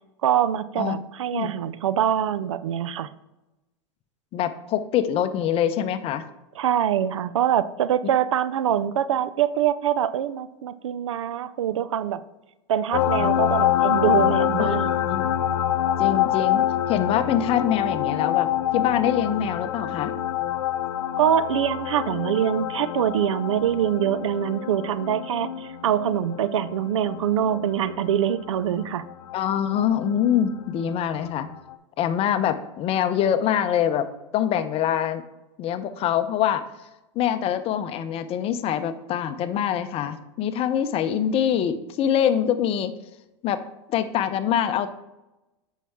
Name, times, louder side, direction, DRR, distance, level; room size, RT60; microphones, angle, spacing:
voice 1, 0.2-3.1 6.6-12.2 12.7-14.9 21.2-29.1, right 10 dB, 85° right, 15 dB, 0.5 m, -24 dB
voice 2, 4.3-6.2 14.6-15.3 16.0-16.6 16.9-18.5 18.7-20.1 29.3-31.5 32.0-34.1 34.3-35.2 35.6-36.6 37.1-42.9 43.4-43.6 43.9-44.9, left 9 dB, 40° left, 11 dB, 0.7 m, -24 dB
sound 1, 12.9-30.1 31.7-31.8, left 11 dB, 80° left, 0.6 m, -26 dB
8.3 x 5.7 x 3.6 m, 0.99 s
hypercardioid pair, 105°, 15 cm